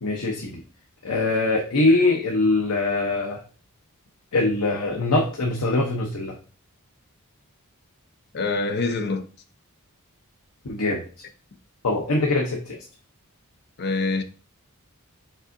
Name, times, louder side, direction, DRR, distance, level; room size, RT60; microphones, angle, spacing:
voice 1, 0.0-0.6 1.0-3.4 4.3-6.4 10.6-11.0 11.8-12.8, left 2 dB, 90° left, 0.8 m, -22 dB
voice 2, 1.9-2.3 8.3-9.2 13.8-14.2, left 3 dB, 50° left, 0.6 m, -26 dB
5.3 x 3.5 x 2.6 m
head